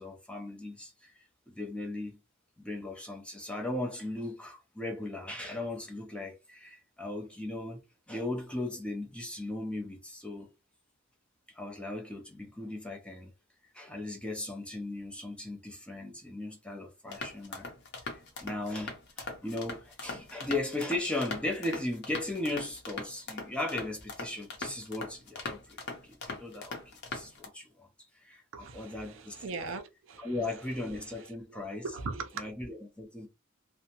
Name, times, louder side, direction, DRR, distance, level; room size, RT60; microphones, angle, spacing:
voice 1, 0.0-2.2 2.6-10.5 11.5-13.3 13.7-17.7 18.0-27.9 28.1-29.6 30.2-31.9 32.3-33.3, left 2 dB, 5° left, 0.5 m, -37 dB
sound 1, 17.1-27.5, left 3 dB, 50° left, 0.7 m, -41 dB
voice 2, 28.5-30.3 31.5-32.5, right 4 dB, 65° right, 0.5 m, -40 dB
2.6 x 2.0 x 2.8 m
head